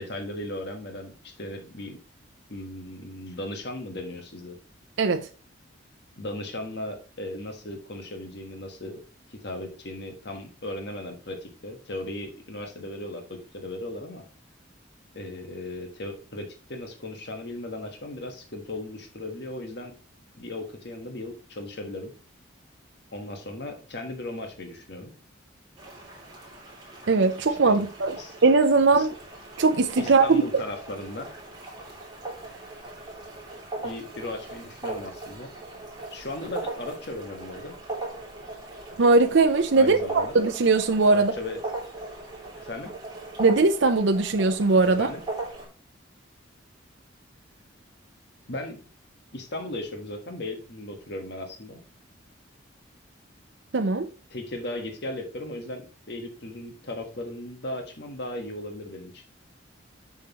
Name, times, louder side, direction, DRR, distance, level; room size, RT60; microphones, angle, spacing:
voice 1, 0.0-2.0 2.5-4.5 6.2-9.0 9.3-14.2 15.1-19.9 20.4-22.1 23.1-25.1 27.6-27.8 28.2-28.3 28.9-29.1 30.0-31.3 33.8-35.5 36.1-37.8 39.7-40.3 41.1-41.6 42.5-42.9 45.0-45.2 48.5-48.8 49.3-51.8 54.3-55.8 56.1-59.2, left 1 dB, 55° left, 1.4 m, -36 dB
voice 2, 5.0-5.3 27.1-28.2 28.4-29.1 29.6-30.6 39.0-41.3 43.4-45.1 53.7-54.1, right 3 dB, 70° right, 0.6 m, -20 dB
sound 1, 25.8-45.7, right 2 dB, 20° right, 2.8 m, -39 dB
7.1 x 6.4 x 3.0 m
head